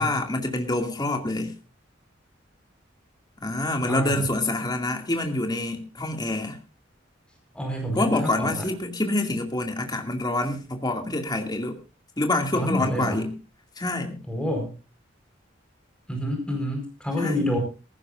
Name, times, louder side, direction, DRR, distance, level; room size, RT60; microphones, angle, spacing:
voice 1, 0.0-1.5 3.4-6.6 7.9-11.8 12.2-13.3 13.8-14.2 17.2-17.5, left 2 dB, 20° left, 4 dB, 2.4 m, -26 dB
voice 2, 3.8-4.2 7.5-8.7 12.5-13.2 14.3-14.7 16.1-17.6, equal, 5° left, 2 dB, 4.7 m, -28 dB
18.5 x 15.5 x 2.5 m, 0.32 s
head